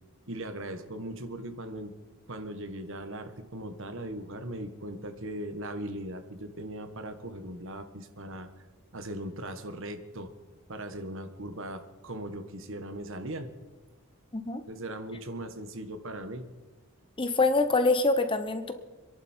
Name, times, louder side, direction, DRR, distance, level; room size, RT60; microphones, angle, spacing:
voice 1, 0.3-1.9 2.3-8.5 8.9-10.3 10.7-13.5 14.7-16.5, right 1 dB, 60° right, 8 dB, 1.5 m, -39 dB
voice 2, 17.2-18.7, left 3 dB, 25° left, 9 dB, 1.0 m, -25 dB
27.0 x 11.5 x 4.5 m, 1.2 s
head